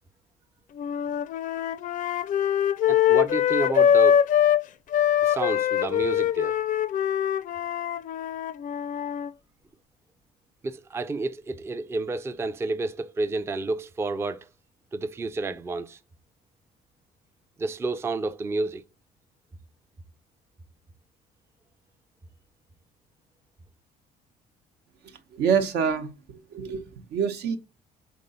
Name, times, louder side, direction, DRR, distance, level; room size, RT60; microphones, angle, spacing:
sound 1, 0.8-4.6 4.9-9.3, left 9 dB, 50° left, 0.4 m, -23 dB
voice 1, 2.9-4.2 5.2-6.6 10.6-14.5 14.9-16.0 17.6-18.8, right 3 dB, 15° right, 0.4 m, -30 dB
voice 2, 25.0-27.6, right 7 dB, 80° right, 1.0 m, -27 dB
5.2 x 3.8 x 5.4 m
cardioid pair, 110°, 17 cm